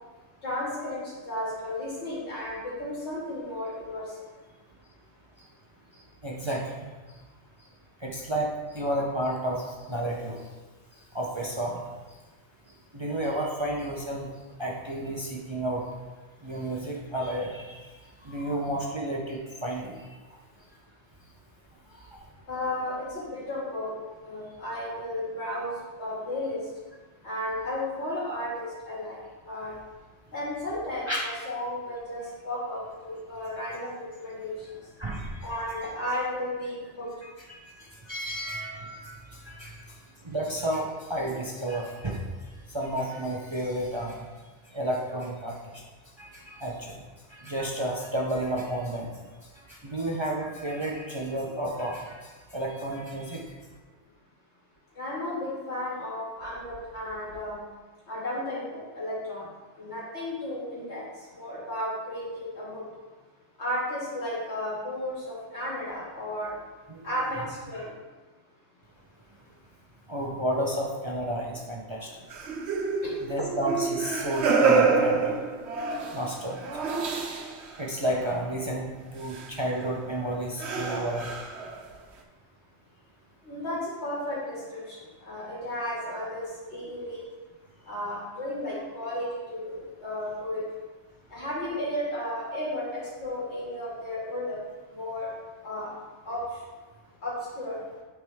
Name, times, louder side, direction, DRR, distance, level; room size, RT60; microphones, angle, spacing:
voice 1, 0.4-4.0 22.5-23.9 24.2-25.7 26.0-26.6 27.2-29.2 29.5-29.7 30.3-32.8 33.0-34.6 35.4-37.1 55.0-57.6 58.1-59.5 59.8-61.0 61.3-62.8 63.6-66.5 67.0-67.9 83.4-85.0 85.2-87.2 87.9-90.6 91.3-94.6 94.9-95.3 95.6-95.9 96.3-96.4 97.2-97.8, left 1 dB, 75° left, -7 dB, 2.7 m, -33 dB
voice 2, 6.2-6.9 8.0-10.4 11.1-11.8 12.9-14.3 14.6-15.8 16.4-17.9 18.2-20.0 22.1-22.2 31.1-31.3 35.0-35.5 37.2-39.8 40.2-42.2 42.7-44.2 44.7-45.8 46.2-47.0 47.3-49.1 49.6-53.5 66.9-67.1 67.3-67.5 70.1-72.1 73.2-75.3 76.1-76.6 77.8-81.3, right 1 dB, 30° right, -2 dB, 0.7 m, -31 dB
sound 1, 72.3-77.8 78.0-78.3 79.3-79.5 80.1-80.2 80.6-81.9, right 4 dB, 75° right, 1.0 m, -27 dB
9.3 x 4.5 x 3.5 m, 1.3 s
omnidirectional pair, 1.1 m